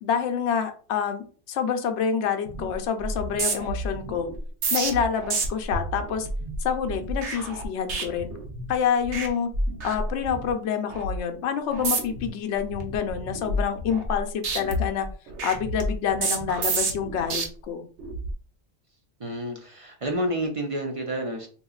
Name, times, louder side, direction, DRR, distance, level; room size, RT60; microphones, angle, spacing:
voice 1, 0.0-4.3 4.7-6.3 6.6-8.3 8.7-9.5 9.8-15.1 15.4-17.9, left 7 dB, 70° left, 6 dB, 0.8 m, -27 dB
sound 1, 2.5-2.7 3.0-8.7 9.0-9.3 9.5-10.5 10.9-11.2 11.7-12.3 12.7-14.2 14.4-17.4 18.0-18.3, right 2 dB, 70° right, 1.0 m, -30 dB
voice 2, 19.2-21.5, right 1 dB, 55° right, 2 dB, 0.4 m, -29 dB
3.7 x 2.8 x 2.3 m, 0.41 s
omnidirectional pair, 1.2 m